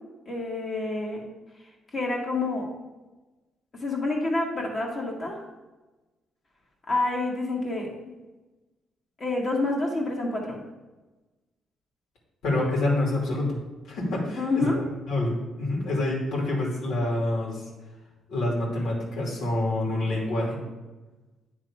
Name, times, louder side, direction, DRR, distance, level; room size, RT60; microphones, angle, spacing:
voice 1, 0.3-1.2 1.9-2.7 3.8-5.4 6.9-8.1 9.2-10.6 14.4-14.8, left 2 dB, 45° left, -2 dB, 1.8 m, -28 dB
voice 2, 12.4-13.6 13.8-14.7 15.1-17.7 18.3-20.6, left 1 dB, 80° left, -3 dB, 2.4 m, -27 dB
9.2 x 3.7 x 4.7 m, 1.1 s
cardioid pair, 90°, 0 cm